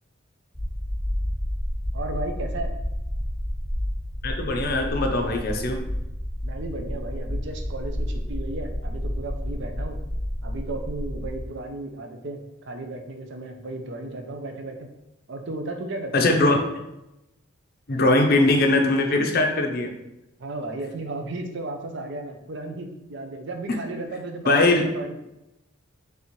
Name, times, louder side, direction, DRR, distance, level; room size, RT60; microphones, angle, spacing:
sound 1, 0.5-11.5, equal, 5° left, 1.2 m, -30 dB
voice 1, 1.9-2.7 6.4-10.0 10.4-12.4 12.7-14.9 15.3-16.6 20.4-25.2, right 2 dB, 55° right, 4 dB, 0.5 m, -34 dB
voice 2, 4.2-5.8 16.1-16.6 17.9-19.9 24.5-24.8, left 2 dB, 45° left, 4 dB, 0.5 m, -21 dB
4.1 x 3.4 x 3.1 m, 0.92 s
head